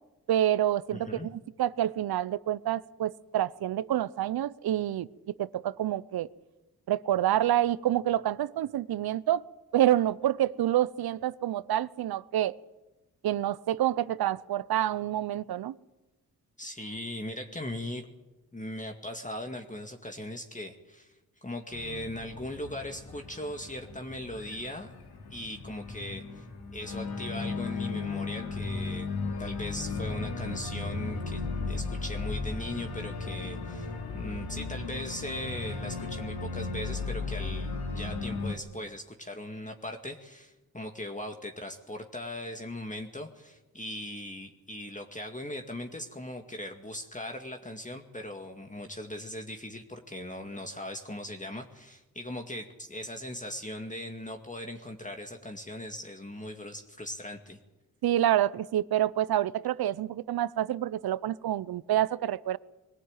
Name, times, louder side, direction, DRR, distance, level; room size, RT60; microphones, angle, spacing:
voice 1, 0.3-6.3 6.9-9.4 9.7-12.5 13.2-15.8 58.0-62.6, right 12 dB, 75° right, 19 dB, 0.7 m, -28 dB
voice 2, 0.9-1.3 16.6-18.1 18.5-24.9 25.3-26.5 26.7-29.1 29.4-57.6, left 1 dB, 20° left, 4 dB, 2.1 m, -39 dB
Organ, 21.7-38.5, left 4 dB, 80° left, 2.9 m, -36 dB
22.0 x 15.5 x 9.0 m, 1.1 s
supercardioid pair, 50°, 38 cm